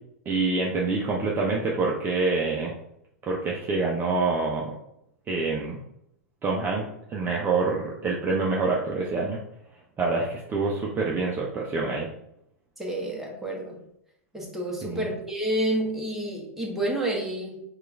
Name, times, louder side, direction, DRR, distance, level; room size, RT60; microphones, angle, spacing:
voice 1, 0.3-2.7 3.3-4.7 5.3-5.8 6.4-6.8 7.1-9.4 10.0-12.1 14.8-15.1, right 3 dB, 25° right, -2 dB, 0.7 m, -26 dB
voice 2, 12.8-13.8 14.3-17.6, right 1 dB, 5° right, -3 dB, 1.3 m, -29 dB
4.6 x 2.5 x 3.3 m, 0.77 s
hypercardioid pair, 110°, 8 cm